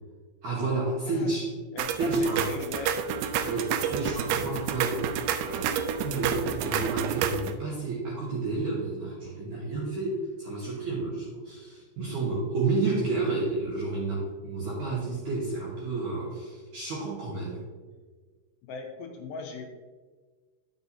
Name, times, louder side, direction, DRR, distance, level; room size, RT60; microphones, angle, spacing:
voice 1, 0.4-1.5 2.0-2.5 3.4-5.1 5.4-17.6, right 3 dB, 65° right, -5 dB, 2.1 m, -30 dB
voice 2, 1.7-3.0 18.6-19.7, left 4 dB, 85° left, 2 dB, 2.7 m, -39 dB
sound 1, 1.8-7.5, right 8 dB, 90° right, 2.3 m, -29 dB
10.0 x 6.9 x 2.8 m, 1.4 s
omnidirectional pair, 5.3 m